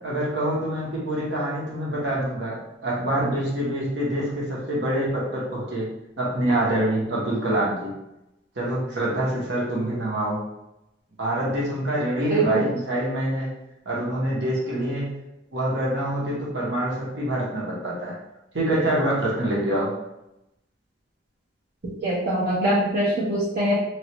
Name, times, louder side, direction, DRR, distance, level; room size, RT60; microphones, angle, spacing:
voice 1, 0.0-5.9 6.2-7.9 8.6-10.4 11.2-13.5 13.8-15.2 15.5-18.1 18.5-19.9, right 1 dB, 75° right, -5 dB, 1.1 m, -25 dB
voice 2, 22.0-23.8, right 1 dB, 55° right, -9 dB, 0.7 m, -23 dB
3.1 x 2.5 x 3.0 m, 0.90 s
head